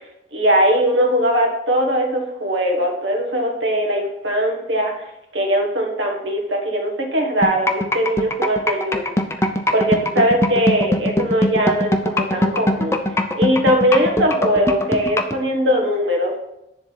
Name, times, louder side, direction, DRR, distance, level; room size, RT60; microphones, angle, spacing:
voice 1, 0.3-4.9 5.3-9.1 9.7-13.0 13.3-16.3, equal, 85° right, 1 dB, 1.4 m, -20 dB
sound 1, 7.4-15.4, left 1 dB, 15° left, 0.5 m, -20 dB
10.0 x 3.6 x 5.7 m, 0.87 s
head